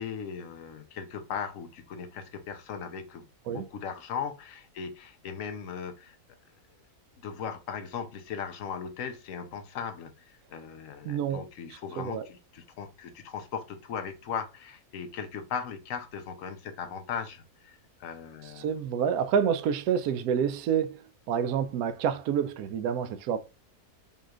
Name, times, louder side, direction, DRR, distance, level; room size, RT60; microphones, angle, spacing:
voice 1, 0.0-6.2 7.2-18.7, left 7 dB, 65° left, 1.0 m, -38 dB
voice 2, 11.0-11.5 12.0-12.3 18.6-23.4, right 8 dB, 75° right, 1.0 m, -28 dB
5.4 x 3.1 x 2.4 m
omnidirectional pair, 1.6 m